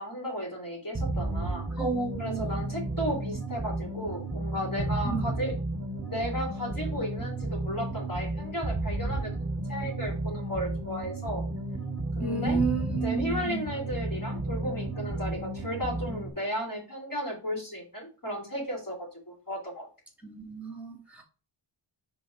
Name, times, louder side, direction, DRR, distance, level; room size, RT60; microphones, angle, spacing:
voice 1, 0.0-1.6 2.2-5.5 6.1-9.3 9.7-11.4 12.1-12.6 12.9-19.9, equal, 40° left, -2 dB, 3.3 m, -34 dB
sound 1, 0.9-16.3, right 2 dB, 25° right, 2.3 m, -33 dB
voice 2, 1.8-2.7 5.0-5.3 12.2-13.6 20.2-21.2, right 4 dB, 5° right, 1 dB, 2.7 m, -31 dB
5.5 x 4.1 x 4.7 m, 0.36 s
wide cardioid pair, 55°, 49 cm